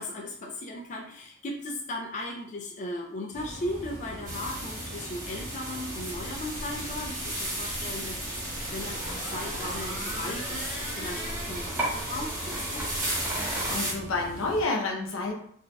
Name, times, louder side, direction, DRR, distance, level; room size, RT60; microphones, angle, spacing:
voice 1, 0.0-12.8, left 1 dB, 35° left, -1 dB, 0.3 m, -37 dB
sound 1, 3.3-14.6, equal, 70° right, 0.7 m, -42 dB
sound 2, 4.2-13.9, right 1 dB, 40° right, 1.5 m, -35 dB
sound 3, 6.3-13.8, right 1 dB, 10° right, 0.6 m, -37 dB
voice 2, 13.3-15.3, left 2 dB, 80° left, 1 dB, 0.6 m, -30 dB
3.9 x 2.4 x 2.2 m, 0.64 s
head